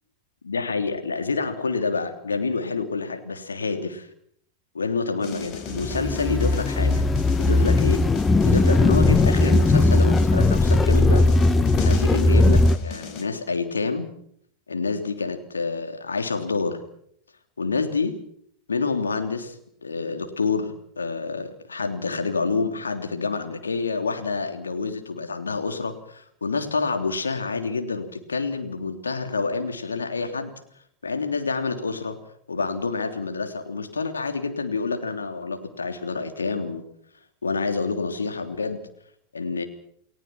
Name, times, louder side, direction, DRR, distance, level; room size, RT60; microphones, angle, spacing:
voice 1, 0.4-4.1 4.7-7.0 7.4-8.1 8.4-11.3 11.8-14.1 14.7-16.8 17.6-18.2 18.7-19.6 19.8-30.5 31.0-32.2 32.5-36.8 37.4-38.8 39.3-39.6, left 4 dB, 75° left, 6 dB, 3.2 m, -28 dB
sound 1, 5.2-13.3, left 5 dB, 40° left, 4.7 m, -39 dB
sound 2, 5.7-12.8, left 2 dB, 15° left, 1.0 m, -18 dB
29.5 x 19.5 x 6.1 m, 0.67 s
figure-of-eight pair, 90°, 0 cm